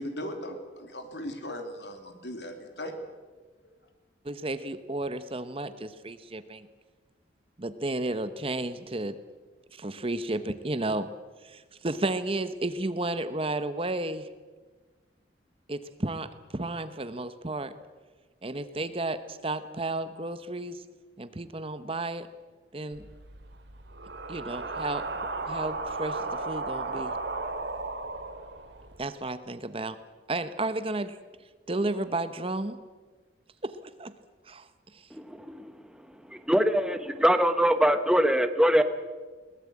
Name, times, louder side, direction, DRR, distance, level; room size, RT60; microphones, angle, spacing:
voice 1, 0.0-2.9, equal, 75° left, 5 dB, 3.0 m, -38 dB
voice 2, 4.2-6.7 7.6-9.2 9.7-11.1 11.4-14.3 15.7-17.7 18.4-20.8 21.2-22.3 22.7-23.1 24.3-25.1 25.4-27.1 29.0-30.0 30.3-31.2 31.7-32.8 33.6-34.1 34.5-35.1, right 2 dB, 30° right, 11 dB, 1.0 m, -32 dB
sound 1, 22.9-29.0, right 3 dB, 80° right, 2.4 m, -35 dB
voice 3, 36.3-38.8, equal, 5° right, 9 dB, 1.2 m, -22 dB
22.0 x 19.0 x 8.5 m, 1.4 s
head